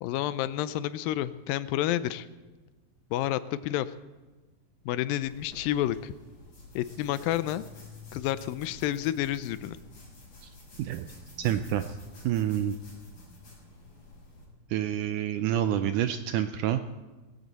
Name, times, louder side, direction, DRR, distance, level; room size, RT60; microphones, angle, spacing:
voice 1, 0.0-2.3 3.1-3.9 4.9-6.1 6.8-7.6 8.1-9.8, left 13 dB, 85° left, 15 dB, 2.3 m, -29 dB
sound 1, 5.2-14.5, left 3 dB, 55° left, 8.5 m, -49 dB
voice 2, 11.4-11.8 12.2-12.8 14.7-16.8, right 11 dB, 80° right, 9 dB, 1.8 m, -27 dB
18.5 x 15.5 x 4.1 m, 1.2 s
omnidirectional pair, 4.1 m